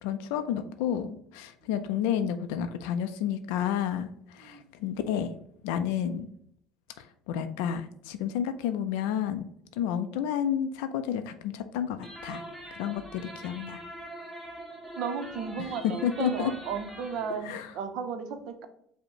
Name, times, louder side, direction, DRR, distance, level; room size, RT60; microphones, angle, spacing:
voice 1, 0.0-5.3 5.6-6.3 7.0-9.4 9.8-12.5 12.7-13.8 15.6-16.5 17.4-17.7, left 9 dB, 90° left, 9 dB, 0.3 m, -31 dB
sound 1, 12.0-17.4, right 1 dB, 5° right, 0.8 m, -43 dB
voice 2, 15.0-18.7, right 6 dB, 65° right, 8 dB, 0.6 m, -34 dB
5.0 x 2.1 x 4.6 m, 0.68 s
cardioid pair, 140°, 0 cm